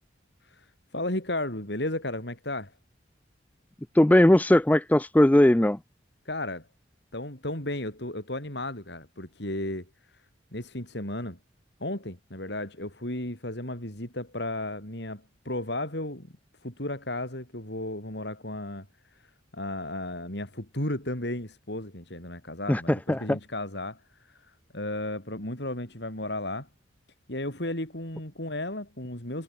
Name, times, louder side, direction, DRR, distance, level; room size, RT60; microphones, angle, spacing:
voice 1, 0.9-2.7 6.2-6.7 7.1-9.9 10.5-11.4 11.8-16.3 16.6-18.9 19.5-24.0 24.7-26.7 27.3-29.4, left 1 dB, 60° left, 5.0 m, -34 dB
voice 2, 3.9-5.8 22.7-23.4, left 1 dB, 10° left, 0.4 m, -19 dB
head